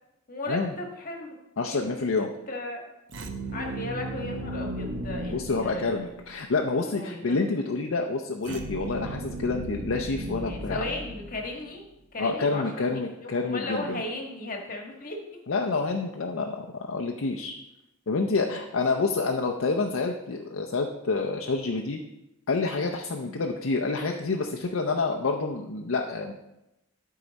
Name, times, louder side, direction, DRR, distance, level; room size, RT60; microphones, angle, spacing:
voice 1, 0.3-1.3 1.6-2.8 3.5-6.0 6.7-7.4 10.5-11.8 12.1-15.2 23.2-23.4, left 2 dB, 40° left, 1 dB, 1.5 m, -36 dB
voice 2, 1.6-2.3 5.3-10.8 12.2-14.0 15.5-17.6 18.1-22.0 22.5-26.3, left 3 dB, 65° left, 1 dB, 0.6 m, -28 dB
sound 1, 3.1-6.4 8.4-11.7, right 2 dB, 60° right, 0.8 m, -36 dB
12.0 x 4.7 x 4.1 m, 0.92 s
head